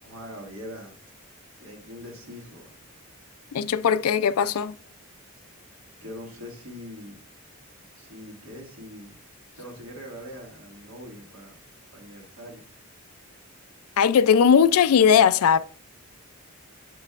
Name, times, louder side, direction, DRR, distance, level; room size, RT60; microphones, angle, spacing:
voice 1, 0.0-1.0 1.6-2.9 6.0-7.2 8.0-9.2 9.5-11.6 11.9-12.7, equal, 65° right, 1.8 m, -42 dB
voice 2, 3.5-4.7 14.0-15.6, left 7 dB, 75° left, 0.4 m, -19 dB
7.4 x 5.3 x 2.4 m
head